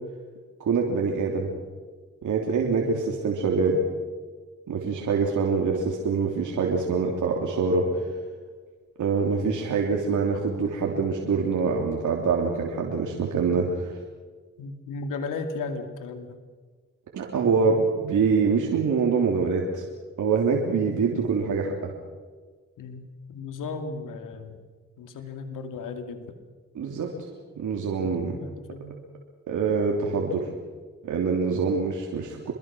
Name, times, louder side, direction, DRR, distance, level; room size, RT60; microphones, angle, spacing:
voice 1, 0.6-1.5 2.2-3.8 4.7-8.0 9.0-14.0 17.1-19.8 20.2-21.9 26.7-27.1 27.6-28.4 29.5-30.5 31.0-32.5, right 5 dB, 70° right, -1 dB, 3.2 m, -25 dB
voice 2, 14.6-16.4 22.8-24.6 25.0-26.4 28.0-29.0, left 4 dB, 85° left, 7 dB, 2.6 m, -36 dB
26.0 x 22.0 x 6.3 m, 1.5 s
supercardioid pair, 50°, 31 cm